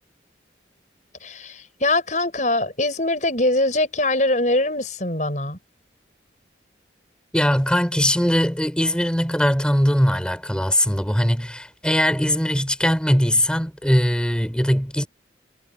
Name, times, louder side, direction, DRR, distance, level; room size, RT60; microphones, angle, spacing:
voice 1, 1.2-5.6, left 2 dB, 40° left, 6.9 m, -22 dB
voice 2, 7.3-15.1, equal, 5° left, 5.8 m, -20 dB
head